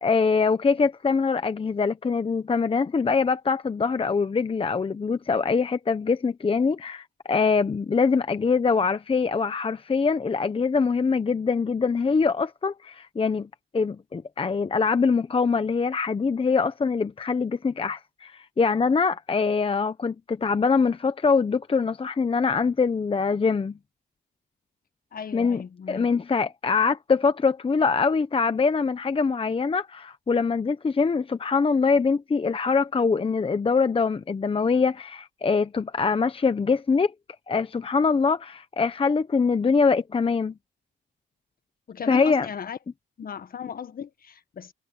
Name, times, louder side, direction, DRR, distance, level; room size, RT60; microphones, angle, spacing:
voice 1, 0.0-13.5 13.7-23.8 25.3-25.6 25.9-37.1 37.5-40.5 42.1-42.5, left 5 dB, 25° left, 1.0 m, -23 dB
voice 2, 25.1-26.1 41.9-42.8 43.2-44.7, left 7 dB, 45° left, 1.6 m, -36 dB
cardioid pair, 90°, 20 cm